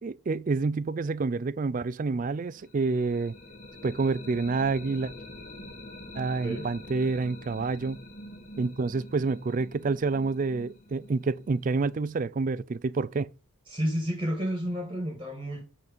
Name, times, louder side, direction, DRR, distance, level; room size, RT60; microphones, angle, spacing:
voice 1, 0.0-3.3 3.8-5.1 6.1-8.0 8.6-13.3, right 4 dB, 40° right, 0.3 m, -28 dB
sound 1, 2.5-12.3, left 1 dB, 35° left, 1.7 m, -46 dB
voice 2, 13.7-15.6, equal, 25° right, 1.6 m, -31 dB
8.5 x 4.1 x 5.1 m
head